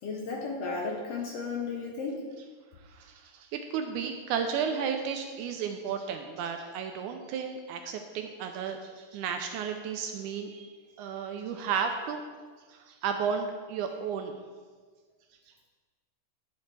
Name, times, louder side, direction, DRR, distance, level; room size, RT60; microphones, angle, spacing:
voice 1, 0.0-2.2, left 4 dB, 75° left, -1 dB, 1.4 m, -34 dB
voice 2, 2.9-10.7 11.0-12.2 12.7-14.4, right 7 dB, 80° right, 5 dB, 1.9 m, -33 dB
10.5 x 7.3 x 3.3 m, 1.5 s
omnidirectional pair, 3.9 m